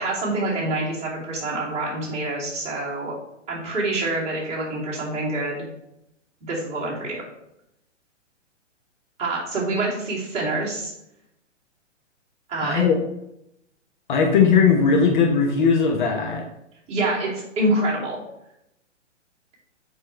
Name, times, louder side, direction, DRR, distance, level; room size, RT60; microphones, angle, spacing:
voice 1, 0.0-3.1 3.5-5.7 6.4-7.2 9.2-10.9 12.5-12.8 16.9-18.2, right 2 dB, 15° right, -7 dB, 2.8 m, -26 dB
voice 2, 12.6-12.9 14.1-16.4, left 5 dB, 40° left, 1 dB, 1.0 m, -18 dB
7.6 x 5.7 x 3.3 m, 0.81 s
figure-of-eight pair, 120°, 37 cm